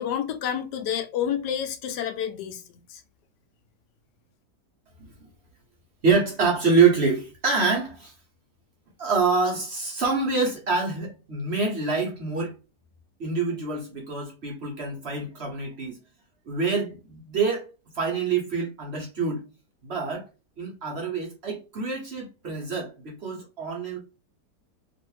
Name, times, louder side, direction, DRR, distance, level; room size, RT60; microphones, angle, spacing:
voice 1, 0.0-3.0, left 9 dB, 85° left, 1.2 m, -29 dB
voice 2, 6.0-8.1 9.0-12.5 13.2-16.0 16.5-19.4 19.8-20.3 20.6-24.0, right 4 dB, 45° right, 1.0 m, -26 dB
3.0 x 2.6 x 3.1 m
omnidirectional pair, 1.8 m